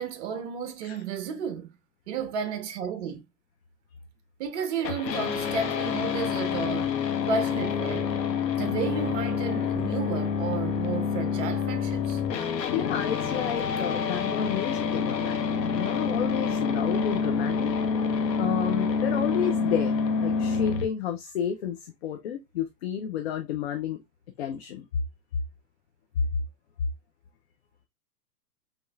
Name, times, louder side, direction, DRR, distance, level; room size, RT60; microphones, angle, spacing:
voice 1, 0.0-1.8 2.1-3.2 4.4-7.0 7.3-8.2 8.6-12.2, right 6 dB, 45° right, 0.9 m, -32 dB
sound 1, 4.8-20.8, left 6 dB, 75° left, 1.1 m, -27 dB
voice 2, 12.7-17.7 18.3-24.0 24.4-24.9, left 9 dB, 40° left, 0.6 m, -31 dB
5.6 x 3.0 x 2.3 m
hypercardioid pair, 145°, 50 cm